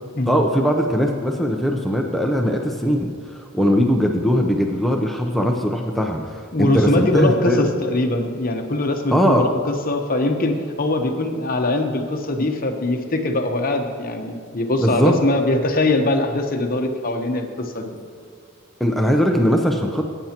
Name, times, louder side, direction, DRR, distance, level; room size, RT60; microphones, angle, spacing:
voice 1, 0.3-7.6 9.1-9.5 14.8-15.1 18.8-20.0, equal, ahead, 2 dB, 0.6 m, -20 dB
voice 2, 6.5-17.9, left 2 dB, 40° left, 4 dB, 0.9 m, -22 dB
17.5 x 9.0 x 2.9 m, 2.2 s
head